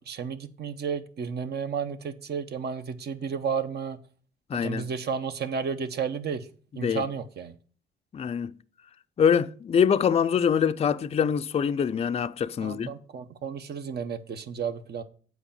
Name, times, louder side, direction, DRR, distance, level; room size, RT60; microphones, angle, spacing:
voice 1, 0.1-4.0 4.6-6.4 6.8-7.5 12.6-15.0, right 6 dB, 55° right, 0.9 m, -32 dB
voice 2, 4.5-4.9 6.8-7.0 8.1-8.5 9.2-12.9, left 7 dB, 30° left, 0.4 m, -24 dB
8.2 x 4.6 x 7.1 m
cardioid pair, 90°, 20 cm